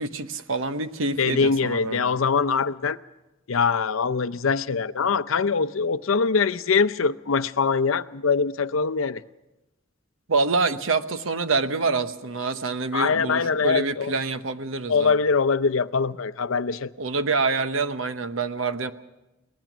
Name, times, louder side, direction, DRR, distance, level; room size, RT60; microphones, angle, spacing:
voice 1, 0.0-2.2 10.3-15.2 17.0-18.9, right 3 dB, 80° right, 1.0 m, -26 dB
voice 2, 1.2-3.0 3.5-9.2 12.9-14.1 14.9-16.9, left 5 dB, 85° left, 0.6 m, -23 dB
23.0 x 19.5 x 6.1 m
head